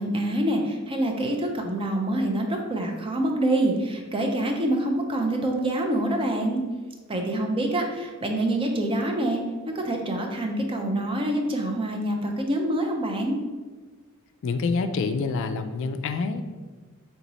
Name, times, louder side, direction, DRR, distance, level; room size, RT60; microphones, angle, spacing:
voice 1, 0.0-6.6 7.1-9.4 9.7-13.4, right 1 dB, 25° right, 2 dB, 0.5 m, -26 dB
voice 2, 14.4-16.4, left 4 dB, 60° left, 8 dB, 0.3 m, -27 dB
3.6 x 3.0 x 4.0 m, 1.3 s
head